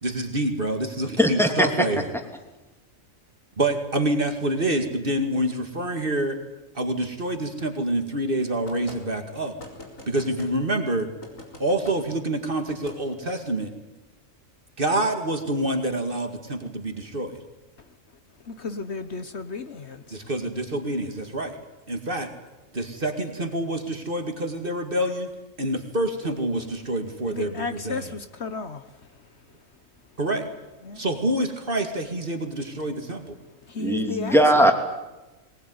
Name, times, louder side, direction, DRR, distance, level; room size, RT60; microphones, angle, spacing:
voice 1, 0.0-2.1 3.6-6.4 6.8-9.5 10.1-11.1 11.6-13.7 14.8-17.4 20.1-21.6 21.9-22.3 22.7-25.3 25.6-28.0 30.2-30.5 31.0-33.4, right 1 dB, 40° right, 2.3 m, -27 dB
voice 2, 1.2-1.9 33.8-34.7, equal, ahead, 2.8 m, -19 dB
sound 1, 8.7-9.0 9.6-10.5 11.2-12.0 12.7-13.0, left 1 dB, 80° left, 4.7 m, -42 dB
voice 3, 18.4-20.3 27.3-29.3 30.8-31.1 33.6-34.4, left 4 dB, 55° left, 1.4 m, -34 dB
21.0 x 20.0 x 9.6 m
omnidirectional pair, 1.4 m